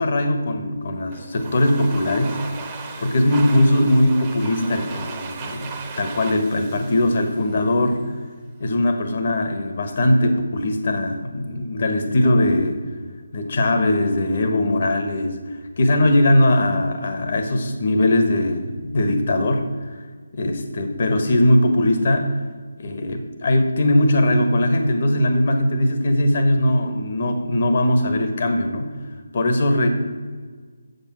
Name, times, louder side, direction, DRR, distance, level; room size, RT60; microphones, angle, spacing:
voice 1, 0.0-2.5 3.0-8.1 8.6-12.8 13.3-15.4 15.8-19.7 20.3-22.4 22.8-28.9 29.3-29.9, left 1 dB, 45° left, 6 dB, 1.3 m, -20 dB
Domestic sounds home sounds, 1.1-8.0, right 4 dB, 20° right, 1.0 m, -37 dB
8.1 x 6.7 x 6.1 m, 1.5 s
figure-of-eight pair, 155°, 0 cm